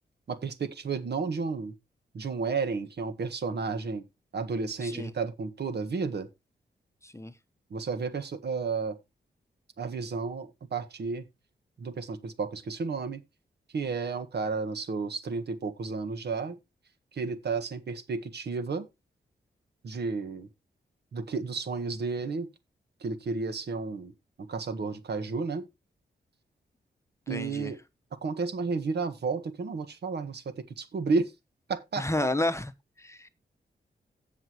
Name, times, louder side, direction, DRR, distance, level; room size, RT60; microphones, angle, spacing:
voice 1, 0.3-1.7 2.1-4.0 4.3-6.3 7.7-9.0 9.8-11.2 11.8-13.2 13.7-16.6 17.1-18.8 19.8-20.5 21.1-22.5 23.0-24.1 24.4-25.7 27.3-27.8 28.2-31.3 31.7-32.3, right 4 dB, 65° right, 1.5 m, -32 dB
voice 2, 4.8-5.1 7.0-7.3 27.3-27.7 32.0-32.7 33.0-33.3, left 1 dB, 15° left, 0.9 m, -31 dB
16.5 x 5.9 x 3.0 m
cardioid pair, 85°, 18 cm